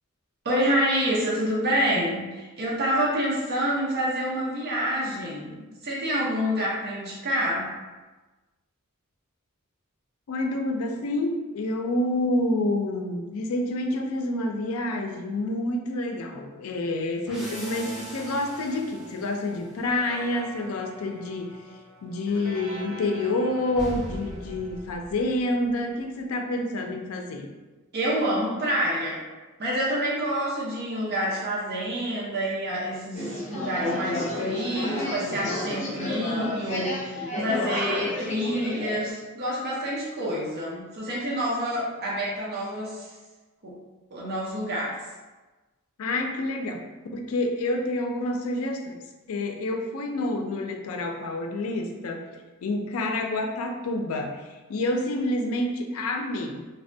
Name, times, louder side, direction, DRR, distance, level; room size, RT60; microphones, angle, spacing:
voice 1, 0.4-7.7 27.9-29.2 29.6-43.1 43.6-43.8 44.1-45.0, equal, 50° right, -6 dB, 0.7 m, -27 dB
voice 2, 10.3-21.6 22.0-27.5 46.0-49.0 49.3-52.2 52.6-56.7, left 1 dB, 80° left, 4 dB, 0.4 m, -28 dB
sound 1, 17.3-25.7, right 1 dB, ahead, 0.7 m, -41 dB
sound 2, 33.1-39.1, left 1 dB, 35° left, 0.6 m, -31 dB
3.3 x 2.1 x 2.6 m, 1.2 s
head